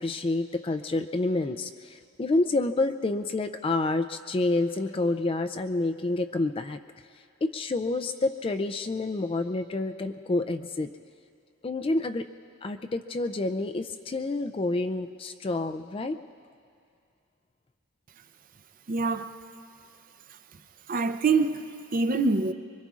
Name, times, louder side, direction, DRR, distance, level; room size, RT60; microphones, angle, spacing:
voice 1, 0.0-6.8 7.4-10.9 11.6-12.3 12.6-16.2, left 2 dB, 25° left, 8 dB, 0.3 m, -28 dB
voice 2, 18.9-19.3 20.9-22.5, right 3 dB, 40° right, 9 dB, 0.6 m, -25 dB
25.0 x 23.5 x 2.4 m, 2.3 s
head